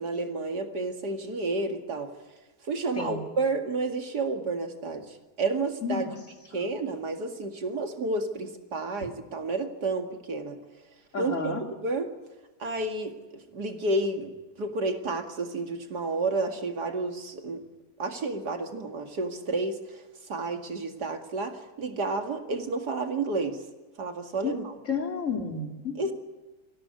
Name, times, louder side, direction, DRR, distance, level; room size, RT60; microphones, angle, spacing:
voice 1, 0.0-2.1 2.6-6.0 6.5-10.6 11.2-12.1 12.6-17.6 18.0-23.6 24.0-24.7 26.0-26.1, right 3 dB, 85° right, 5 dB, 2.8 m, -31 dB
voice 2, 5.8-6.1 6.5-6.7 11.1-11.6 24.4-24.5 24.8-26.1, left 4 dB, 50° left, 3 dB, 3.2 m, -31 dB
25.0 x 16.5 x 9.6 m, 1.2 s
omnidirectional pair, 1.7 m